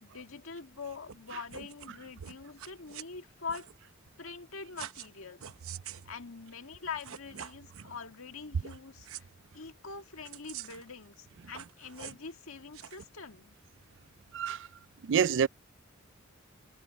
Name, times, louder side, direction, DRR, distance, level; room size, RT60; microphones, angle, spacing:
voice 1, 0.0-3.7 4.2-5.4 6.1-9.3 9.5-13.6, left 5 dB, 80° left, 1.8 m, -44 dB
sound 1, 1.1-1.2 1.5-1.9 2.2-3.0 3.5-3.7 4.8-5.1 5.4-6.1 6.7-6.8 7.0-7.9 8.6-8.8 9.0-9.2 10.2-10.9 11.4-12.3 12.7-13.0, right 9 dB, 85° right, 0.9 m, -45 dB
voice 2, 15.1-15.5, right 7 dB, 60° right, 0.4 m, -26 dB
head